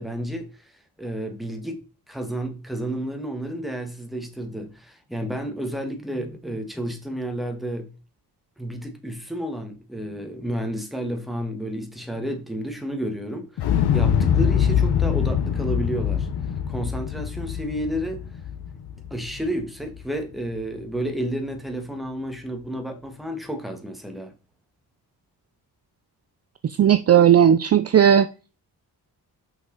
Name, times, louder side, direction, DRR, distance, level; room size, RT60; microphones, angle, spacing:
voice 1, 0.0-1.8 2.1-7.9 8.6-16.3 16.7-18.2 19.1-24.3, right 1 dB, ahead, 1.7 m, -31 dB
Explosion, 13.6-19.6 19.9-20.0, left 8 dB, 90° left, 1.0 m, -23 dB
voice 2, 26.8-28.3, right 9 dB, 40° right, 0.5 m, -15 dB
5.9 x 5.9 x 4.0 m
cardioid pair, 95°, 38 cm